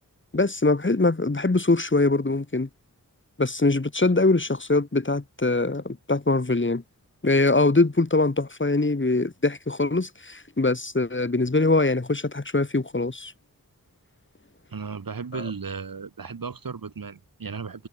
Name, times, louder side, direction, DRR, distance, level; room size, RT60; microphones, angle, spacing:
voice 1, 0.3-2.7 3.4-6.8 7.2-13.3 15.3-15.4, left 2 dB, 35° left, 4.7 m, -23 dB
voice 2, 14.7-17.9, right 5 dB, 85° right, 5.7 m, -35 dB
wide cardioid pair, 80°, 34 cm